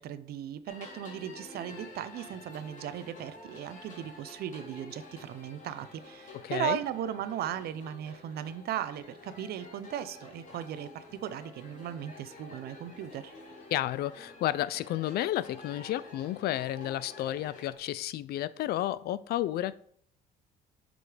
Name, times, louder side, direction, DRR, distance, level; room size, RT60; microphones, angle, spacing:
voice 1, 0.0-13.3, right 10 dB, 65° right, 0.7 m, -37 dB
sound 1, 0.7-17.8, left 2 dB, 50° left, 2.5 m, -49 dB
voice 2, 6.4-6.8 13.7-19.7, left 13 dB, 70° left, 0.5 m, -31 dB
7.8 x 5.3 x 5.0 m
cardioid pair, 110°, 17 cm